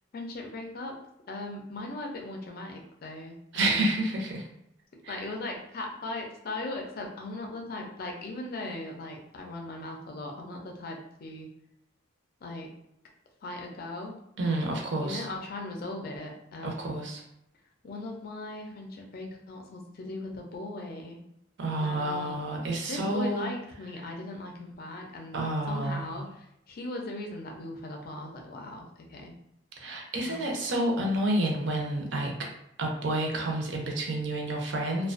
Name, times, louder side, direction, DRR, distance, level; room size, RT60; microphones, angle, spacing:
voice 1, 0.1-0.9 1.3-4.0 5.1-11.5 12.4-12.7 13.4-14.2 15.0-16.9 17.8-21.2 21.8-22.3 22.9-29.3 30.2-30.4, left 2 dB, 50° left, 1 dB, 0.4 m, -39 dB
voice 2, 3.5-4.4 5.0-5.2 14.4-15.3 16.6-17.2 21.6-23.5 25.3-26.1 29.8-32.3 32.8-35.1, right 1 dB, 65° right, 1 dB, 0.5 m, -29 dB
2.4 x 2.2 x 2.4 m, 0.79 s
head